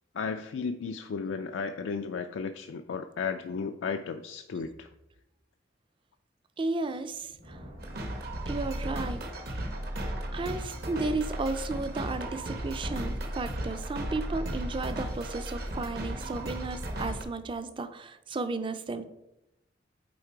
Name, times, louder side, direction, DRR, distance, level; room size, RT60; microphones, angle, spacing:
voice 1, 0.2-4.9, left 5 dB, 90° left, 6 dB, 0.4 m, -34 dB
voice 2, 6.6-7.6 8.5-9.2 10.3-19.0, right 3 dB, 25° right, 11 dB, 0.4 m, -34 dB
Thunder, 7.0-9.4, equal, 75° right, 2.3 m, -52 dB
sound 1, 7.8-17.2, right 1 dB, 55° right, 1.0 m, -35 dB
8.4 x 3.6 x 4.6 m, 0.89 s
head